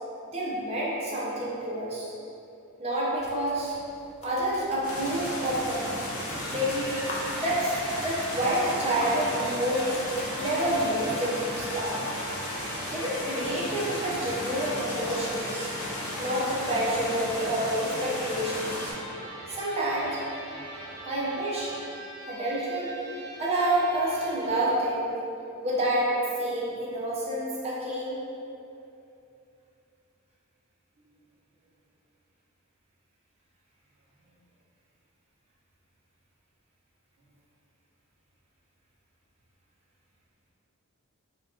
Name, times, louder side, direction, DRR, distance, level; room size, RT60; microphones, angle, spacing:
voice 1, 0.2-2.1 2.8-3.8 4.2-5.9 6.5-7.0 7.4-10.0 10.3-12.0 12.9-15.7 16.2-18.9 19.5-20.2 21.0-21.7 22.3-22.9 23.4-25.2 25.6-28.2, right 1 dB, 30° right, -6 dB, 0.5 m, -28 dB
sound 1, 3.1-10.9, left 2 dB, 30° left, 0.3 m, -44 dB
sound 2, 4.8-18.9, left 1 dB, 85° left, 0.8 m, -35 dB
Electric guitar, 6.3-24.7, right 1 dB, 85° right, 0.7 m, -42 dB
2.4 x 2.2 x 3.5 m, 2.7 s
head